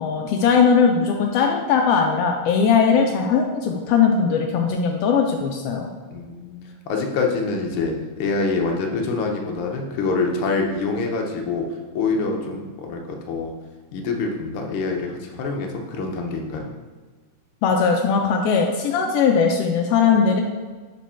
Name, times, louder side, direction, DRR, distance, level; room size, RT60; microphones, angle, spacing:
voice 1, 0.0-5.9 17.6-20.4, left 6 dB, 85° left, 2 dB, 1.4 m, -19 dB
voice 2, 6.1-6.6 6.9-11.6 11.9-13.5 13.9-16.7, left 4 dB, 70° left, 2 dB, 1.4 m, -25 dB
5.2 x 4.4 x 5.5 m, 1.4 s
omnidirectional pair, 3.3 m